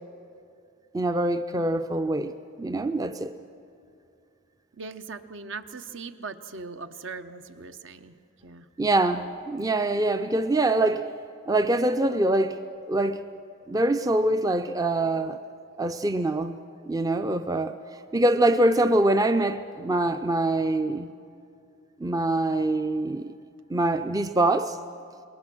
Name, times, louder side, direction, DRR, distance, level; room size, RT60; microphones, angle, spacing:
voice 1, 0.9-2.3 2.6-3.4 8.8-11.1 11.5-13.2 13.7-15.4 15.8-16.6 16.9-17.8 18.1-21.1 22.0-23.3 23.7-24.8, right 2 dB, 15° right, 9 dB, 0.4 m, -24 dB
voice 2, 4.8-8.1 8.4-8.6, right 4 dB, 65° right, 10 dB, 0.9 m, -39 dB
27.0 x 21.5 x 6.2 m, 2.5 s
head